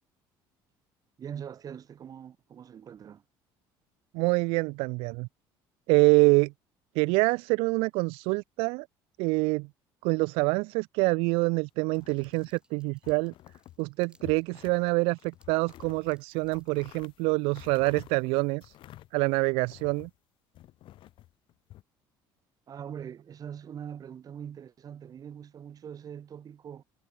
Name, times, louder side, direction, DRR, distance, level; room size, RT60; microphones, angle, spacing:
voice 1, 1.2-3.2 22.7-26.8, right 8 dB, 40° right, 1.2 m, -42 dB
voice 2, 4.1-5.3 5.9-6.5 7.0-8.9 9.2-9.7 10.0-13.3 13.8-18.7 19.1-20.1, right 28 dB, 85° right, 0.4 m, -26 dB
sound 1, 11.9-12.6 13.0-13.8 14.1-14.8 15.2-20.2 20.5-21.8, left 14 dB, 65° left, 2.1 m, -51 dB
sound 2, 11.9-16.9, right 2 dB, 10° right, 7.9 m, -69 dB
cardioid pair, 105°, 9 cm